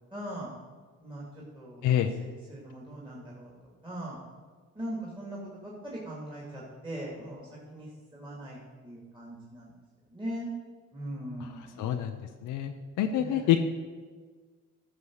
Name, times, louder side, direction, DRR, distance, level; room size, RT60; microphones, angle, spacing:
voice 1, 0.1-0.5 1.0-1.2 1.5-3.5 3.8-4.2 4.7-8.6 8.8-9.7 10.1-10.5 10.9-12.0 13.1-13.5, right 1 dB, 15° right, -5 dB, 2.7 m, -40 dB
voice 2, 11.8-12.1 12.4-12.7 13.0-13.7, left 10 dB, 85° left, 5 dB, 0.7 m, -26 dB
12.5 x 6.6 x 4.8 m, 1.5 s
cardioid pair, 90°, 30 cm